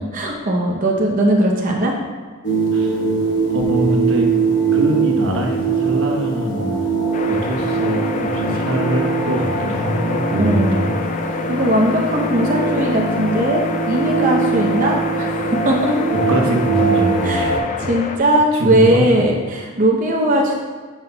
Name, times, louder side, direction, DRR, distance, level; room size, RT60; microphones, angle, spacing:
voice 1, 0.1-1.9 10.4-10.9 11.3-15.9 17.2-17.5 17.8-20.5, right 1 dB, 40° right, -1 dB, 0.7 m, -19 dB
sound 1, 2.4-17.6, right 4 dB, 60° left, 1.0 m, -21 dB
voice 2, 3.5-4.3 4.7-6.9 7.3-10.9 16.1-17.7 18.2-19.1, right 1 dB, 75° right, 0 dB, 1.0 m, -23 dB
sound 2, 7.1-18.2, left 4 dB, 35° left, 0.4 m, -28 dB
9.6 x 5.8 x 2.2 m, 1.5 s
head